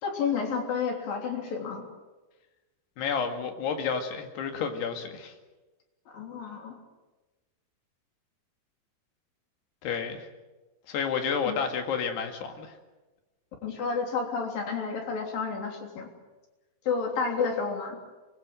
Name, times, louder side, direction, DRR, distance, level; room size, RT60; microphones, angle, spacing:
voice 1, 0.0-1.9 6.1-6.8 11.4-11.6 13.6-16.1 16.9-18.0, left 5 dB, 60° left, 2 dB, 5.0 m, -30 dB
voice 2, 3.0-5.3 9.8-10.3 10.9-12.7, left 6 dB, 90° left, 5 dB, 4.2 m, -30 dB
24.5 x 21.0 x 7.8 m, 1.2 s
omnidirectional pair, 4.6 m